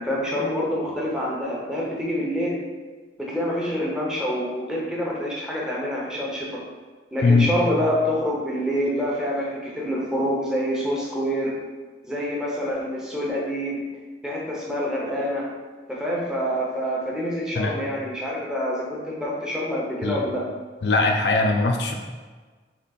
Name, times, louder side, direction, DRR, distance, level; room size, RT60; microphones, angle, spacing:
voice 1, 0.0-2.6 3.2-6.6 7.1-11.5 12.1-13.8 14.2-15.5 15.9-20.4, equal, 5° right, -4 dB, 0.8 m, -26 dB
voice 2, 7.2-7.6 17.5-17.8 20.0-20.2 20.8-21.9, left 3 dB, 70° left, 2 dB, 0.5 m, -20 dB
3.8 x 3.1 x 4.0 m, 1.4 s
head